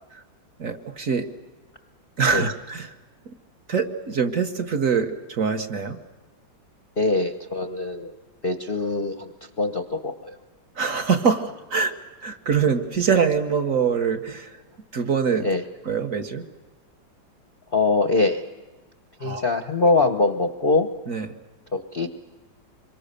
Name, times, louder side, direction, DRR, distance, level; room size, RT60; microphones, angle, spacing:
voice 1, 0.6-1.3 2.2-2.9 3.7-6.0 10.8-11.9 12.2-14.5 14.9-15.5 15.9-16.4 19.2-19.4 19.8-19.9 21.1-21.2, right 6 dB, 50° right, 5 dB, 1.4 m, -24 dB
voice 2, 7.0-8.1 8.4-10.4 15.4-15.6 17.7-18.4 19.2-20.9 21.7-22.1, left 3 dB, 45° left, 7 dB, 0.7 m, -23 dB
26.0 x 23.0 x 6.7 m, 1.3 s
omnidirectional pair, 2.1 m